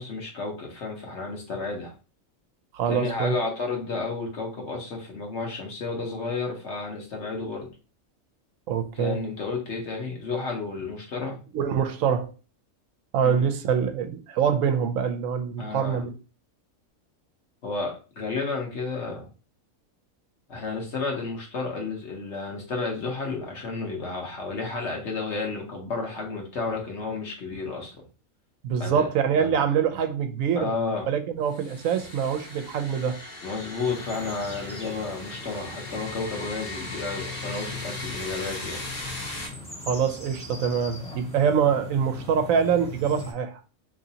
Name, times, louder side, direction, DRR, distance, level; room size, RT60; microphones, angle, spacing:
voice 1, 0.0-1.9 2.9-7.7 9.0-11.4 13.2-13.4 15.6-16.0 17.6-19.3 20.5-27.9 28.8-29.1 29.4-29.5 30.6-31.1 33.4-38.8, left 4 dB, 55° left, 1.2 m, -32 dB
voice 2, 2.7-3.3 8.7-9.2 11.5-12.3 13.1-16.1 28.6-30.7 31.1-33.2 39.8-43.6, right 7 dB, 75° right, 1.0 m, -25 dB
sound 1, 31.5-39.5, left 1 dB, 40° left, 1.0 m, -38 dB
sound 2, 33.8-43.3, left 4 dB, 5° left, 0.8 m, -40 dB
3.8 x 3.1 x 2.7 m
omnidirectional pair, 1.4 m